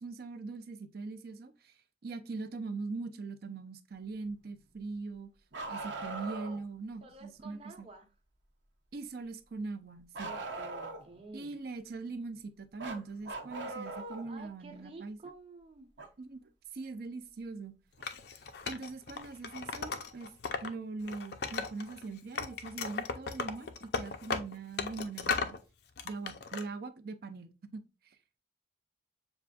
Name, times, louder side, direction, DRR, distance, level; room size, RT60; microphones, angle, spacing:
voice 1, 0.0-1.7 2.0-5.3 5.7-7.9 8.9-10.4 11.3-15.2 16.2-16.4 16.7-17.7 18.7-20.3 20.6-25.6 26.0-28.4, right 3 dB, 55° right, 0.5 m, -41 dB
Bark, 5.5-6.6 10.1-11.2 12.8-14.3 16.0-16.1 18.0-18.1 19.2-19.3, right 3 dB, 85° right, 0.9 m, -40 dB
voice 2, 7.0-8.1 10.2-11.5 14.3-15.9, right 3 dB, 30° right, 0.9 m, -51 dB
Wood, 18.0-20.7 21.0-22.0 22.3-25.6 26.0-26.6, left 5 dB, 60° left, 0.5 m, -36 dB
7.0 x 2.5 x 2.3 m
head